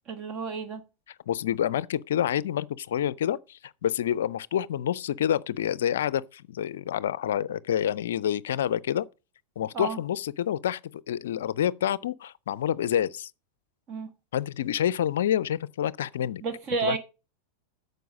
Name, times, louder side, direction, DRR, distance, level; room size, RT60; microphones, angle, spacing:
voice 1, 0.1-0.8 9.7-10.0 13.9-14.1 16.4-17.0, right 5 dB, 35° right, 1.4 m, -31 dB
voice 2, 1.3-9.1 9.6-10.8 11.1-13.3 14.3-16.4 16.8-17.0, left 10 dB, 60° left, 0.5 m, -28 dB
9.2 x 6.7 x 5.1 m
figure-of-eight pair, 90°, 0 cm